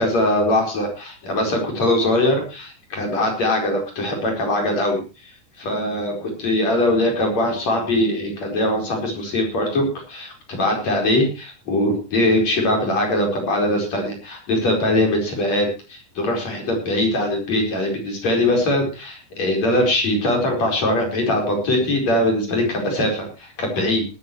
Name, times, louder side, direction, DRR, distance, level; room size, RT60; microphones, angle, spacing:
voice 1, 0.0-5.0 5.6-24.1, left 1 dB, 55° left, 2 dB, 5.9 m, -21 dB
19.0 x 12.5 x 3.2 m, 0.31 s
omnidirectional pair, 3.8 m